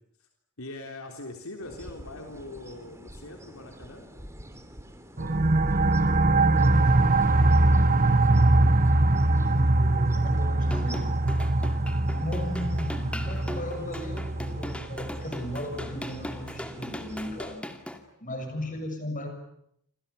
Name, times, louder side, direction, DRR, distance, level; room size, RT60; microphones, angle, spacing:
voice 1, 0.6-4.1 18.4-18.8, left 2 dB, 70° left, 3 dB, 3.7 m, -42 dB
sound 1, 1.6-17.6, right 1 dB, 15° right, 3.0 m, -48 dB
voice 2, 5.2-5.7 6.9-7.5 9.2-11.1 11.9-17.6 18.2-19.3, left 1 dB, 35° left, 5 dB, 7.1 m, -38 dB
sound 2, 5.2-16.5, right 2 dB, 40° right, 1.4 m, -23 dB
sound 3, 10.6-18.0, left 1 dB, 5° left, 2.3 m, -39 dB
28.5 x 27.0 x 7.1 m, 0.74 s
head